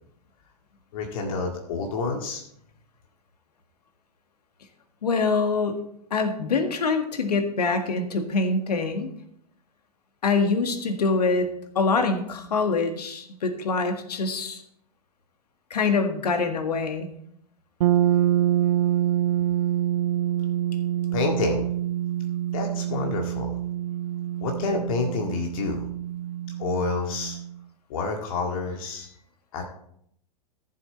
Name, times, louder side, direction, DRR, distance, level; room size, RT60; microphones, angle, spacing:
voice 1, 0.9-2.4 21.1-21.7 22.5-23.6 24.4-25.9 26.6-27.4 27.9-29.2 29.5-29.6, left 4 dB, 55° left, 2 dB, 2.0 m, -28 dB
voice 2, 5.0-5.8 6.1-9.1 10.2-11.5 11.8-14.6 15.7-17.1, left 4 dB, 75° left, 6 dB, 1.8 m, -24 dB
sound 1, 17.8-27.6, right 11 dB, 60° right, 0.5 m, -26 dB
14.0 x 7.4 x 4.3 m, 0.70 s
hypercardioid pair, 105°, 20 cm